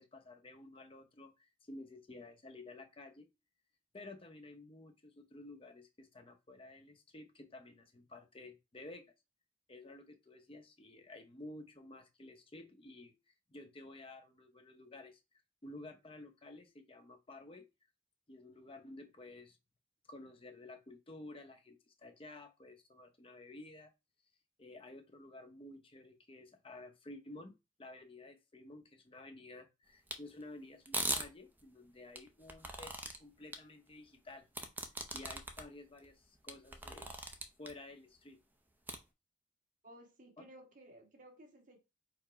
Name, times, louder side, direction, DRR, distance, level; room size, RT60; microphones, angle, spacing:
voice 1, 0.0-3.3 3.9-9.1 9.7-13.1 13.5-15.2 15.6-17.7 18.3-19.6 20.1-23.9 24.6-34.5 35.1-37.1 37.6-38.4 40.4-40.5, left 2 dB, 30° left, 0.7 m, -52 dB
sound 1, 30.1-30.2 30.9-31.2 32.2-33.2 33.5-33.6 34.5-35.6 36.0-36.1 36.5-37.7 38.9-39.0, right 2 dB, 10° right, 0.5 m, -38 dB
voice 2, 39.8-41.8, right 1 dB, 45° right, 1.5 m, -57 dB
4.8 x 2.1 x 4.6 m
head